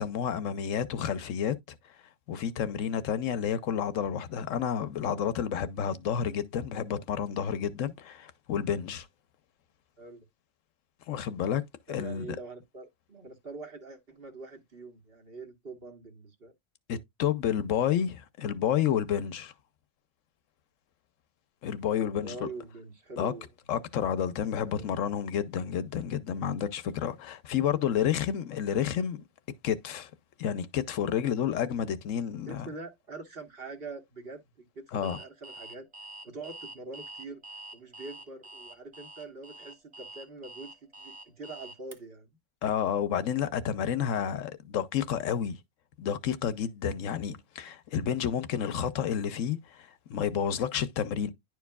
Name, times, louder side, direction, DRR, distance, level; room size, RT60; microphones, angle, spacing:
voice 1, 0.0-1.5 2.3-9.1 11.1-11.6 11.9-12.4 16.9-19.5 21.6-22.5 23.2-23.3 23.7-29.2 29.6-30.1 30.4-32.7 34.9-35.2 42.6-45.6 46.0-51.3, left 8 dB, 75° left, 1.0 m, -30 dB
voice 2, 11.9-16.5 22.0-23.5 24.6-25.0 32.5-35.9 36.2-37.4 37.7-42.4, right 3 dB, 45° right, 1.6 m, -44 dB
Alarm, 35.0-42.0, right 1 dB, 25° right, 0.9 m, -46 dB
10.5 x 4.6 x 2.3 m
omnidirectional pair, 1.4 m